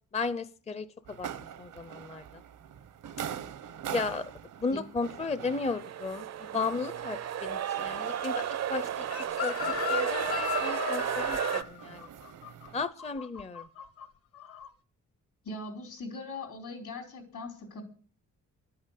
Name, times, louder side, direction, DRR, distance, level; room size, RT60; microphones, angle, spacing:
voice 1, 0.1-1.3 1.6-2.4 3.9-4.2 4.6-9.0 9.3-12.1 12.7-13.7, left 4 dB, 20° left, 13 dB, 0.5 m, -35 dB
sound 1, 1.1-12.9, right 9 dB, 90° right, 0.9 m, -44 dB
sound 2, 5.5-11.6, right 9 dB, 60° right, 0.5 m, -33 dB
Chicken rooster, 9.1-14.1 14.3-14.7, left 8 dB, 50° left, 1.0 m, -35 dB
voice 2, 15.4-17.8, left 2 dB, 75° left, 3 dB, 4.7 m, -40 dB
12.0 x 8.7 x 8.3 m, 0.42 s
wide cardioid pair, 150°, 30 cm